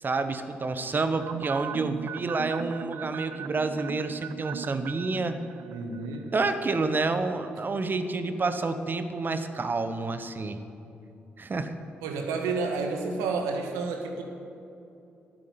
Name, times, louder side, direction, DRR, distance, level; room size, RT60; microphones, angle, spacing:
voice 1, 0.0-5.4 6.3-10.6 11.4-11.7, right 3 dB, 40° right, 9 dB, 1.2 m, -29 dB
sound 1, 1.2-6.6 6.8-6.9, right 10 dB, 60° right, 0.4 m, -39 dB
voice 2, 5.7-6.3 12.0-14.2, right 4 dB, 75° right, 3 dB, 1.5 m, -30 dB
11.0 x 8.7 x 9.5 m, 2.7 s
hypercardioid pair, 40°, 5 cm